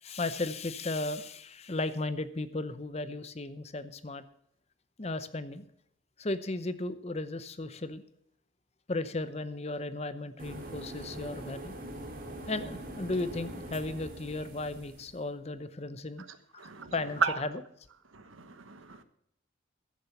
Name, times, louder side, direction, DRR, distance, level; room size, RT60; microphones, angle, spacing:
voice 1, 0.0-4.2 5.0-5.7 6.2-8.0 8.9-11.7 12.5-16.2 16.5-16.6 16.9-17.6, left 2 dB, 30° left, 0.7 m, -35 dB
sound 1, 10.4-15.2, right 1 dB, 45° right, 2.6 m, -43 dB
voice 2, 16.6-16.9 17.2-17.4 18.1-19.0, right 6 dB, 90° right, 1.2 m, -33 dB
14.5 x 7.5 x 7.0 m
head